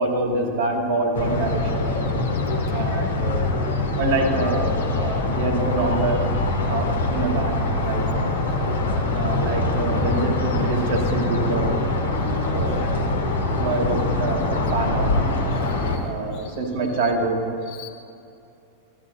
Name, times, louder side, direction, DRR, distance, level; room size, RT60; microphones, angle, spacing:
voice 1, 0.0-1.9 2.7-3.5 4.0-8.3 9.1-11.8 12.3-12.8 13.6-15.1 16.0-17.4, right 2 dB, 50° right, 2 dB, 1.3 m, -26 dB
sound 1, 1.1-16.0, left 2 dB, 65° left, 1.1 m, -23 dB
voice 2, 12.7-13.3 15.7-16.5 17.0-17.1 17.7-17.9, left 7 dB, 45° left, 5 dB, 1.0 m, -39 dB
15.0 x 12.0 x 2.7 m, 2.7 s
figure-of-eight pair, 90°, 0 cm